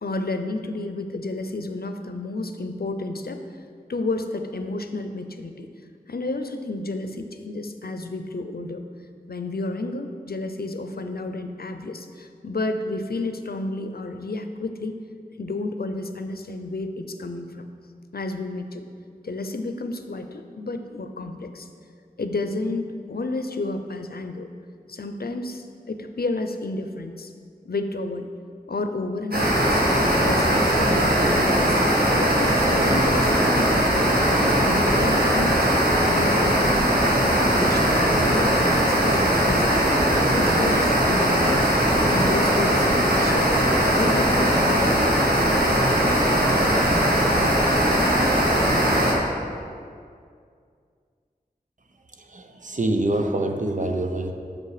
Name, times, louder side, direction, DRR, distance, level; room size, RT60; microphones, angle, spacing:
voice 1, 0.0-3.4 3.9-5.7 6.1-8.8 9.3-15.0 15.3-17.7 18.1-18.9 19.2-21.7 22.2-24.5 24.9-27.3 27.6-28.3 28.7-29.8 30.2-31.8 32.2-35.7 36.1-36.8 37.1-41.7 42.1-43.5 43.9-45.1, left 2 dB, 85° left, 7 dB, 0.6 m, -31 dB
sound 1, 29.3-49.1, right 1 dB, 80° right, 1.7 m, -20 dB
voice 2, 52.2-54.3, right 1 dB, 55° right, 4 dB, 0.8 m, -25 dB
8.5 x 6.4 x 4.9 m, 2.2 s
wide cardioid pair, 50°, 16 cm